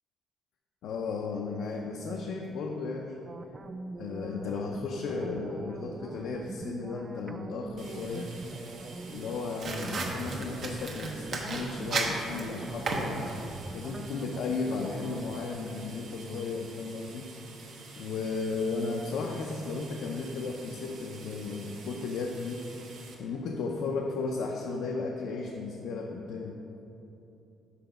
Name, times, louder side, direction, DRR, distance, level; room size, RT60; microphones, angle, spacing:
voice 1, 0.8-3.2 4.0-8.3 9.1-13.3 13.7-17.3 17.5-17.6 18.0-22.7 23.2-26.6, left 4 dB, 75° left, 1 dB, 0.5 m, -34 dB
sound 1, 3.3-15.7, right 3 dB, 25° right, 0.3 m, -42 dB
sound 2, 7.8-23.1, right 3 dB, 75° right, 1.0 m, -48 dB
sound 3, 9.6-13.7, right 3 dB, 50° right, 0.9 m, -35 dB
5.8 x 5.7 x 5.0 m, 2.9 s
cardioid pair, 135°, 0 cm